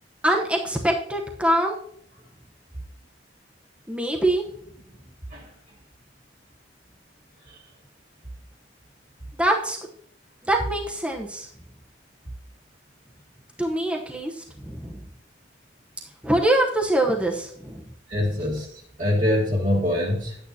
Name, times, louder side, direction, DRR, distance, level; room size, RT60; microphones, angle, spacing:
voice 1, 0.2-1.8 3.9-4.4 9.4-9.8 10.4-11.5 13.6-15.0 16.2-17.8, right 1 dB, 5° right, 0 dB, 0.9 m, -24 dB
voice 2, 18.1-20.4, left 1 dB, 45° right, -3 dB, 1.6 m, -24 dB
10.5 x 8.8 x 2.8 m, 0.65 s
head